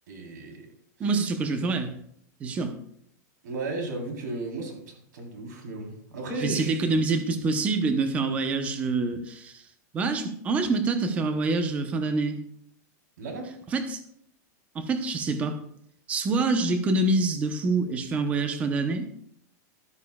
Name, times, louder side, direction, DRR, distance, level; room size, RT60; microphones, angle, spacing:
voice 1, 0.1-0.7 1.2-1.3 3.4-7.0 13.2-13.5, right 2 dB, 85° right, 1 dB, 3.7 m, -35 dB
voice 2, 1.0-2.0 2.4-2.7 6.4-9.6 9.9-12.4 13.7-14.0 14.7-15.6 16.1-19.1, right 3 dB, 15° right, 8 dB, 0.8 m, -26 dB
13.0 x 12.0 x 2.3 m, 0.68 s
supercardioid pair, 175°, 9 cm